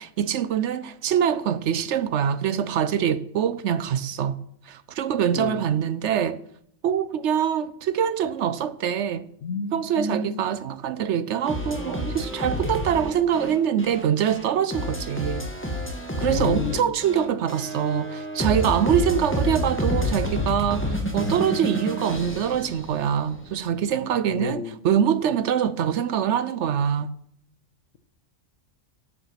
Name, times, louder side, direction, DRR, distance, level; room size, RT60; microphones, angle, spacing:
voice 1, 0.0-4.4 4.7-6.4 6.8-9.3 9.7-15.8 16.2-27.1, right 8 dB, 65° right, 0.8 m, -24 dB
voice 2, 9.4-10.4 16.3-16.9 24.3-24.8, left 4 dB, 70° left, 1.3 m, -30 dB
sound 1, 11.5-23.4, equal, 10° left, 1.9 m, -29 dB
10.5 x 8.7 x 5.8 m
omnidirectional pair, 1.4 m